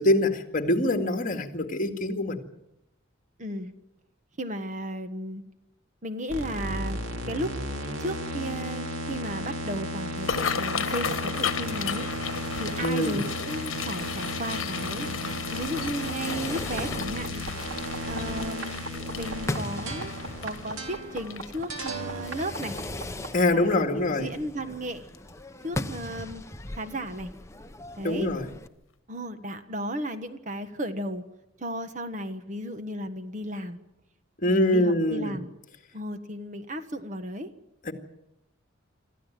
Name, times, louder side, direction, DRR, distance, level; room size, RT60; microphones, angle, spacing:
voice 1, 0.0-2.4 12.8-13.2 23.3-24.3 28.0-28.5 34.4-35.4 37.8-37.9, left 1 dB, 45° left, 2.1 m, -24 dB
voice 2, 3.4-3.7 4.4-5.4 6.0-7.0 7.3-7.5 8.0-12.1 12.5-17.4 18.0-18.9 19.1-20.1 20.4-22.8 23.5-25.0 25.6-26.4 26.8-27.3 28.0-28.3 29.1-31.2 31.6-33.8 34.4-35.5 35.9-37.5, equal, 40° right, 1.4 m, -34 dB
sound 1, 6.3-23.4, right 1 dB, 90° right, 2.9 m, -34 dB
sound 2, 10.1-23.2 23.7-24.0 24.3-24.7 25.1-25.3 26.5-26.7 27.1-27.2 27.7-27.8, left 7 dB, 90° left, 1.1 m, -35 dB
Fireworks, 15.6-28.7, left 1 dB, 15° left, 0.9 m, -39 dB
26.5 x 14.0 x 9.1 m
head